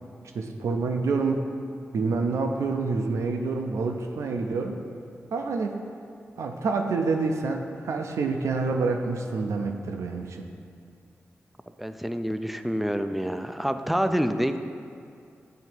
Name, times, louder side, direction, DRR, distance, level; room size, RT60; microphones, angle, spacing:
voice 1, 0.3-1.4 1.9-4.8 5.3-5.7 6.4-10.5, right 4 dB, 80° right, 3 dB, 0.4 m, -27 dB
voice 2, 11.8-14.6, equal, ahead, 8 dB, 0.3 m, -27 dB
7.8 x 2.7 x 4.4 m, 2.4 s
cardioid pair, 40°, 5 cm